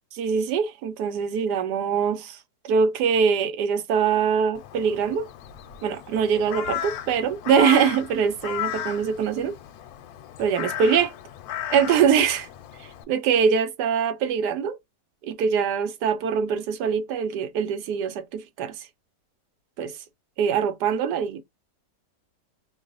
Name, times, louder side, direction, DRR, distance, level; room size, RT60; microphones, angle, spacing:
voice 1, 0.1-2.4 2.7-5.3 5.8-9.5 10.4-11.1 11.7-12.5 13.1-14.8 15.2-18.8 19.8-19.9 20.4-21.4, right 7 dB, 80° right, 1.2 m, -23 dB
Crow, 4.6-13.0, left 11 dB, 70° left, 1.0 m, -35 dB
3.1 x 2.0 x 3.8 m
omnidirectional pair, 1.9 m